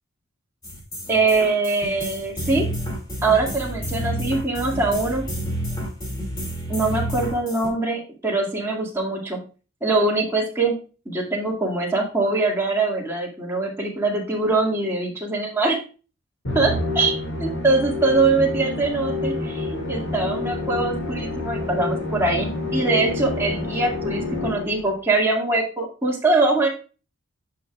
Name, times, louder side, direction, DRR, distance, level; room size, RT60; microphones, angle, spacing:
sound 1, 0.6-7.7, equal, 20° left, 2.3 m, -30 dB
voice 1, 1.1-2.7 3.2-5.2 6.7-9.4 9.8-10.7 11.1-15.8 16.5-26.7, right 3 dB, 10° right, -3 dB, 1.9 m, -23 dB
Musical instrument, 16.4-24.9, left 2 dB, 60° left, 2.1 m, -28 dB
10.0 x 5.6 x 2.4 m, 0.35 s
head